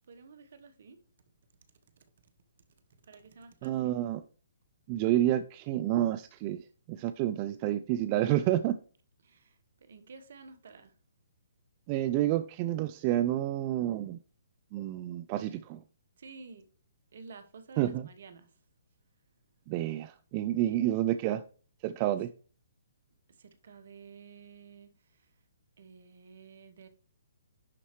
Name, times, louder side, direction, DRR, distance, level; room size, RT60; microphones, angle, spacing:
voice 1, 0.1-1.0 3.0-4.0 9.2-10.9 16.2-16.7 17.1-18.5 20.6-20.8 22.0-22.2 23.3-25.3 25.8-26.9, right 5 dB, 60° right, 0.9 m, -52 dB
voice 2, 3.6-4.2 4.9-8.8 11.9-14.2 14.7-15.8 17.8-18.1 19.7-21.4 21.8-22.3, right 13 dB, 35° right, 0.3 m, -29 dB
11.0 x 4.1 x 3.0 m
figure-of-eight pair, 135°, 0 cm